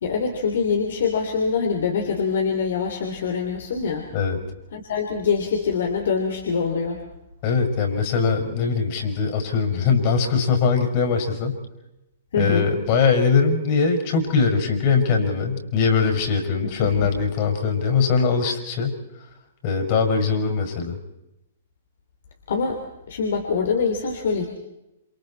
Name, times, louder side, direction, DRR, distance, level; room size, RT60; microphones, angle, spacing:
voice 1, 0.0-4.1 4.7-7.0 12.3-12.7 16.6-17.1 22.5-22.8 23.1-24.5, left 5 dB, 60° left, 3 dB, 3.5 m, -24 dB
voice 2, 7.4-11.6 12.4-18.9 19.6-21.0, left 5 dB, 45° left, 4 dB, 6.0 m, -21 dB
28.5 x 28.0 x 4.3 m, 0.93 s
figure-of-eight pair, 115°, 0 cm